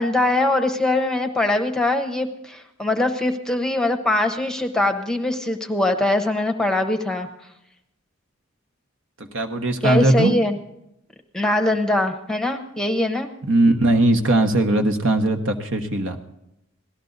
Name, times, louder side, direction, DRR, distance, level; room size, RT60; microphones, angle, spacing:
voice 1, 0.0-7.3 9.8-10.6 11.3-13.3, left 1 dB, 5° left, 5 dB, 0.9 m, -22 dB
voice 2, 9.2-10.3 13.5-16.2, right 1 dB, 65° right, 5 dB, 1.2 m, -19 dB
17.5 x 13.0 x 4.0 m, 0.82 s
head